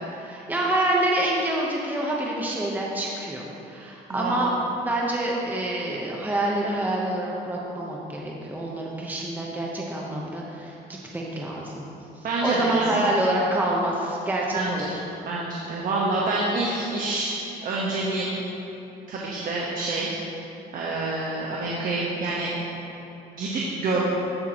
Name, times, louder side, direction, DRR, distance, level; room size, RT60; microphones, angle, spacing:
voice 1, 0.1-4.5 4.8-11.9 12.4-15.0, right 1 dB, 10° right, -3 dB, 0.9 m, -27 dB
voice 2, 12.2-13.1 14.5-14.9 15.2-18.4 19.1-20.2 20.7-22.5 23.3-24.0, right 2 dB, 55° right, -4 dB, 1.2 m, -27 dB
14.5 x 5.9 x 3.0 m, 2.9 s
cardioid pair, 110°, 17 cm